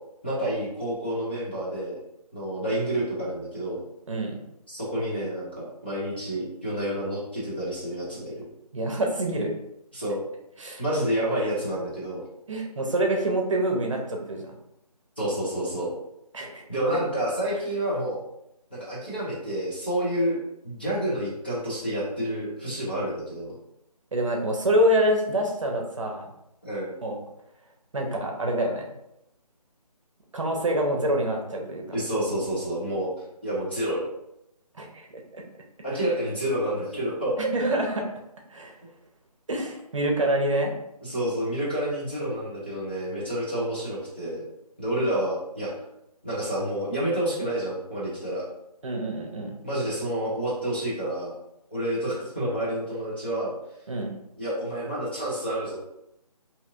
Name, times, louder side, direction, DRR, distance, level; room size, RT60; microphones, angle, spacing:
voice 1, 0.2-2.0 2.3-3.8 4.7-8.4 9.9-10.2 10.8-12.2 15.2-15.9 16.7-18.2 18.7-20.4 20.6-23.5 26.6-26.9 31.9-33.1 33.4-34.1 35.8-37.4 41.0-44.4 44.8-45.7 46.2-48.4 49.6-51.3 51.7-53.5 54.4-55.8, right 1 dB, 15° left, -9 dB, 0.4 m, -29 dB
voice 2, 8.7-9.5 10.6-10.8 12.5-14.4 16.3-16.6 24.1-26.3 27.0-27.2 27.9-28.8 30.3-31.8 34.7-35.1 35.3-35.4 37.4-38.1 38.5-38.8 39.5-40.7 48.8-49.5 53.9-54.1, right 1 dB, 50° right, 1 dB, 0.7 m, -26 dB
3.3 x 2.8 x 2.5 m, 0.83 s
figure-of-eight pair, 155°, 20 cm